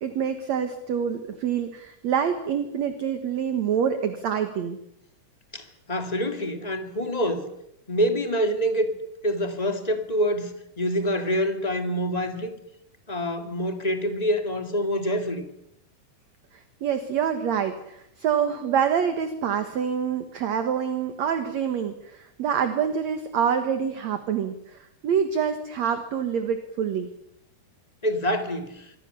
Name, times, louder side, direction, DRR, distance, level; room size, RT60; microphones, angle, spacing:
voice 1, 0.0-4.8 16.8-27.1, right 8 dB, 55° right, 2.1 m, -26 dB
voice 2, 5.5-7.5 7.9-8.9 9.2-12.5 13.1-15.4 28.0-28.9, equal, 20° left, 1.0 m, -26 dB
26.0 x 24.0 x 7.0 m
omnidirectional pair, 4.8 m